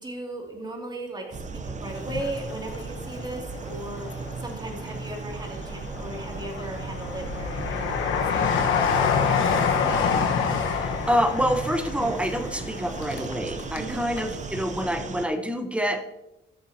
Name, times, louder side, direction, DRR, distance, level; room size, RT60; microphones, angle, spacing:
voice 1, 0.0-8.0 8.3-10.0 13.8-14.0, right 1 dB, 20° right, 0 dB, 2.6 m, -37 dB
sound 1, 1.3-15.3, right 4 dB, 35° right, 0.8 m, -36 dB
Train, 2.0-3.2 3.7-4.6 5.1-13.9 14.2-14.3, left 6 dB, 80° left, 1.3 m, -27 dB
sound 2, 7.2-9.3, left 2 dB, 75° right, 1.9 m, -42 dB
voice 2, 10.7-16.0, equal, 5° right, 7 dB, 1.1 m, -27 dB
14.0 x 7.0 x 2.9 m, 0.89 s
cardioid pair, 90°, 20 cm